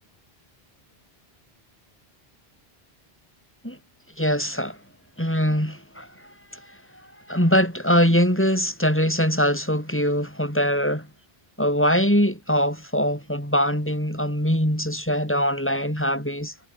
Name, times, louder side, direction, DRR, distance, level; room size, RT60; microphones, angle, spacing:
voice 1, 4.2-4.8 5.2-6.8 7.3-11.1 11.6-16.5, equal, 10° left, 7.6 m, -22 dB
omnidirectional pair, 1.0 m